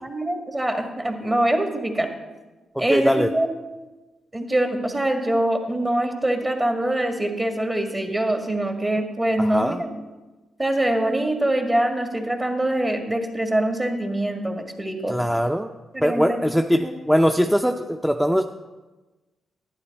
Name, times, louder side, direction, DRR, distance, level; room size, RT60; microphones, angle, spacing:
voice 1, 0.0-2.1 2.8-3.5 4.3-9.9 10.6-15.2 15.9-16.9, right 1 dB, 25° right, 4 dB, 1.9 m, -24 dB
voice 2, 2.7-3.3 9.4-9.8 15.1-15.7 16.0-18.4, equal, ahead, 5 dB, 0.6 m, -21 dB
11.5 x 9.5 x 4.1 m, 1.2 s
supercardioid pair, 50°, 0 cm